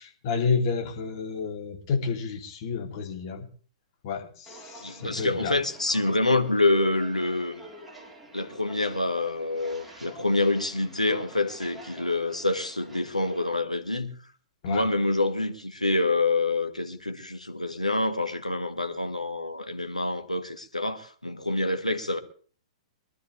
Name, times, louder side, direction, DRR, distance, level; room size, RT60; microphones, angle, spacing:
voice 1, 0.0-3.5 4.0-5.5 14.6-14.8, left 5 dB, 40° left, 2.8 m, -30 dB
Walk footsteps, 4.4-13.5, right 1 dB, 5° right, 3.7 m, -48 dB
voice 2, 4.8-7.6 8.3-14.1 14.7-22.2, left 2 dB, 85° left, 1.8 m, -27 dB
23.5 x 12.5 x 3.3 m
figure-of-eight pair, 110°, 4 cm